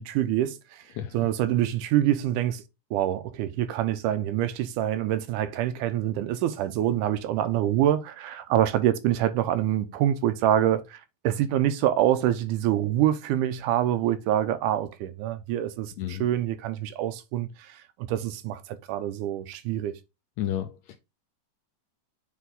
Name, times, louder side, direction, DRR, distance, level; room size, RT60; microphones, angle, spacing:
voice 1, 0.0-0.8 1.1-2.6 2.9-19.9, right 12 dB, 80° right, 2.2 m, -26 dB
voice 2, 20.4-21.0, left 12 dB, 75° left, 1.7 m, -31 dB
7.4 x 3.3 x 3.8 m
omnidirectional pair, 3.7 m